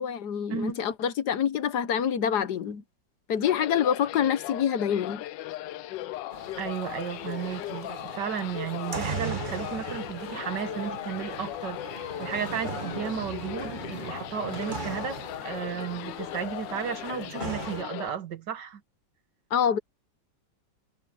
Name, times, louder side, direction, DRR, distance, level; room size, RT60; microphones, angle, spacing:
voice 1, 0.0-2.8 3.3-5.2 19.5-19.8, left 8 dB, 65° left, 1.5 m, -26 dB
sound 1, 3.4-18.1, left 14 dB, 85° left, 1.3 m, -38 dB
sound 2, 6.3-17.8, right 4 dB, 30° right, 1.5 m, -39 dB
voice 2, 6.6-18.8, right 7 dB, 75° right, 1.9 m, -34 dB
omnidirectional pair, 1.9 m